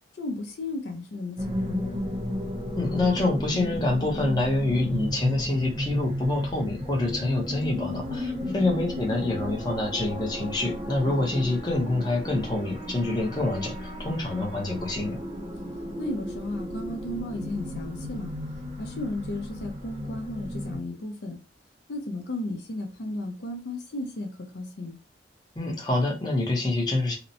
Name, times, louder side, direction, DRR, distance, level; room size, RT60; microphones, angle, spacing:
voice 1, 0.1-2.1 8.4-8.8 11.0-11.2 16.0-18.3 18.8-21.4 21.9-25.0, left 1 dB, 65° left, 0.5 m, -34 dB
sound 1, 1.4-20.8, left 1 dB, 25° right, 0.6 m, -34 dB
voice 2, 2.8-15.2 25.6-27.1, left 2 dB, 25° left, 0.6 m, -26 dB
2.8 x 2.0 x 2.6 m
head